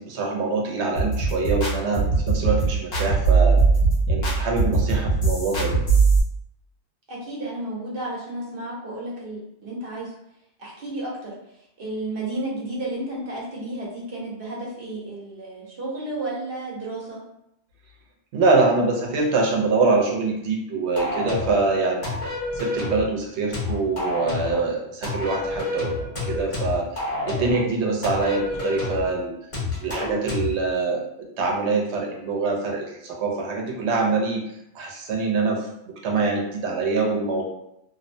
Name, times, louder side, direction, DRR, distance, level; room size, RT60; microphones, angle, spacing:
voice 1, 0.0-3.6 4.1-5.8 18.3-22.2 22.6-25.9 26.2-27.0 27.3-29.3 29.8-31.0 31.4-34.4 34.7-35.7 36.0-37.5, right 3 dB, 85° right, 0 dB, 0.9 m, -24 dB
sound 1, 1.0-6.2, right 4 dB, 65° left, 1.0 m, -20 dB
voice 2, 7.1-10.1 10.6-11.3 11.8-17.2, right 1 dB, 60° right, -4 dB, 0.9 m, -32 dB
sound 2, 21.0-21.6 22.0-23.1 23.5-24.6 25.0-27.6 28.0-29.1 29.5-30.5, left 2 dB, 50° left, 1.3 m, -28 dB
2.6 x 2.0 x 2.6 m, 0.79 s
omnidirectional pair, 1.1 m